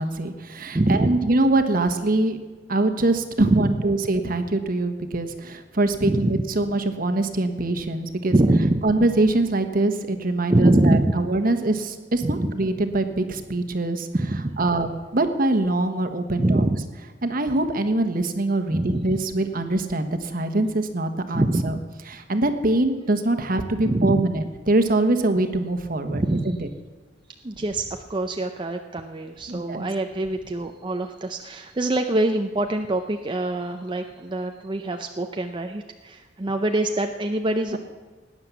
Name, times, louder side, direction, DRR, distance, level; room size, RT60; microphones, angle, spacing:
voice 1, 0.0-2.4 2.7-8.3 8.8-14.1 14.6-16.7 17.2-21.7 22.1-26.6 29.5-29.9, right 2 dB, 55° right, 8 dB, 1.3 m, -23 dB
voice 2, 0.7-1.2 3.4-3.8 6.0-6.4 8.3-8.9 10.5-11.1 12.2-12.5 14.1-14.6 16.4-16.8 18.7-19.2 21.3-21.8 23.8-24.2 26.1-26.6 27.4-37.8, right 1 dB, 25° right, 5 dB, 0.6 m, -24 dB
18.0 x 9.7 x 7.1 m, 1.3 s
head